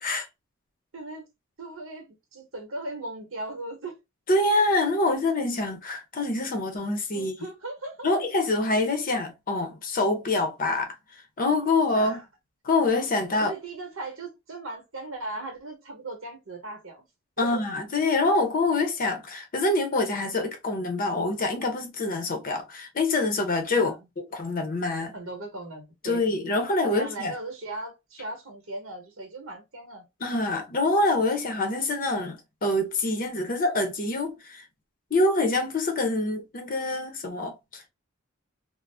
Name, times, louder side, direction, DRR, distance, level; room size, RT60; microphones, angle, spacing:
voice 1, 0.9-1.2 1.6-4.0 7.1-8.1 11.9-12.2 13.3-17.0 17.4-17.6 23.7-24.1 25.1-26.2 26.8-30.1, right 2 dB, 75° right, 1.0 m, -38 dB
voice 2, 4.3-7.3 8.0-10.9 11.4-12.2 12.6-13.5 17.4-23.9 24.3-25.1 26.0-27.3 30.2-34.6 35.1-37.9, left 2 dB, 40° left, 0.6 m, -25 dB
2.5 x 2.0 x 3.2 m
head